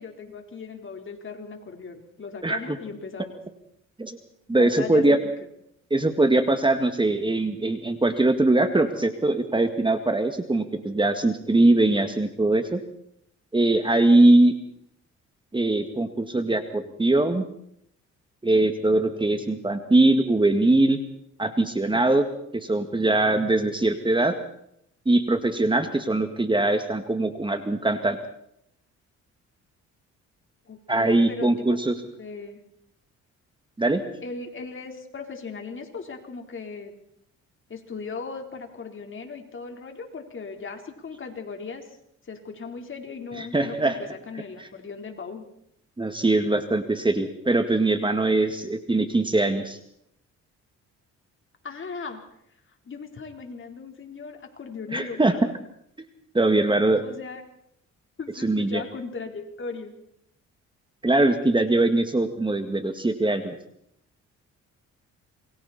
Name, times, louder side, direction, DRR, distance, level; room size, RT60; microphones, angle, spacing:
voice 1, 0.0-3.4 4.5-5.2 30.7-32.6 34.2-36.9 37.7-42.0 42.2-43.9 44.3-45.5 51.6-52.2 52.9-55.4 57.0-57.4 58.2-59.9, left 4 dB, 40° left, 4 dB, 4.0 m, -37 dB
voice 2, 2.4-2.8 4.0-4.2 4.5-5.2 5.9-12.8 13.5-14.5 15.5-17.4 18.4-21.0 21.4-22.3 22.5-24.4 25.1-28.2 30.9-32.0 33.8-34.0 43.4-44.0 46.0-49.8 54.9-55.3 56.3-57.0 58.4-58.8 61.0-63.6, right 2 dB, 15° right, 7 dB, 2.0 m, -21 dB
27.5 x 22.5 x 4.3 m, 0.72 s
cardioid pair, 90°, 30 cm